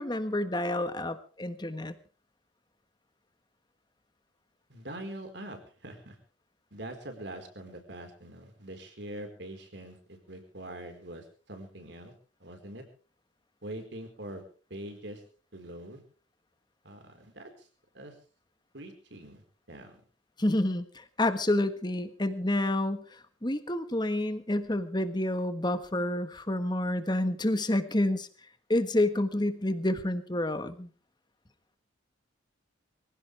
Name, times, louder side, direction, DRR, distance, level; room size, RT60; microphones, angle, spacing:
voice 1, 0.0-1.9 20.4-23.0 23.4-28.3 28.7-30.9, left 1 dB, 20° left, 10 dB, 1.4 m, -29 dB
voice 2, 4.7-6.2 6.7-12.1 12.4-12.8 13.6-14.4 14.7-15.2 15.5-16.0 16.8-17.5 17.9-18.1 18.7-19.4 19.7-20.0, right 1 dB, 60° right, 5 dB, 4.5 m, -43 dB
24.0 x 16.0 x 3.4 m, 0.38 s
head